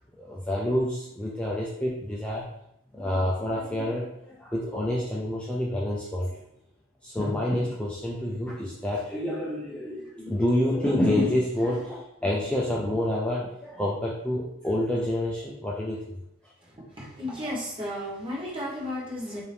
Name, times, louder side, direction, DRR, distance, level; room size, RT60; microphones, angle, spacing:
voice 1, 0.2-2.4 2.9-6.4 7.0-16.0, left 1 dB, 5° left, -5 dB, 0.4 m, -28 dB
voice 2, 16.6-19.4, left 1 dB, 25° right, -5 dB, 1.1 m, -34 dB
4.7 x 2.7 x 3.4 m, 0.79 s
head